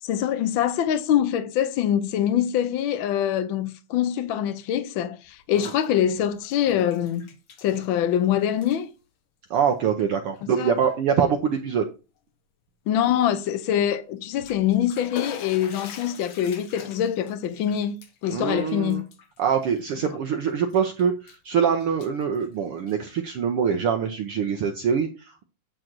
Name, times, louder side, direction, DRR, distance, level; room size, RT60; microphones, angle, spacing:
voice 1, 0.0-7.3 7.6-8.9 10.6-10.8 12.9-19.1, left 10 dB, 75° left, 1.1 m, -24 dB
Bathtub (filling or washing), 5.2-5.9 6.2-8.3 8.5-8.8 9.6-9.7 10.4-10.5 10.9-11.0 14.2-20.3 20.7-21.5 21.8-23.1, left 6 dB, 60° left, 1.5 m, -43 dB
voice 2, 9.5-11.9 18.3-19.0 19.4-21.1 21.4-25.4, right 7 dB, 70° right, 1.4 m, -24 dB
9.2 x 3.8 x 6.0 m
omnidirectional pair, 3.3 m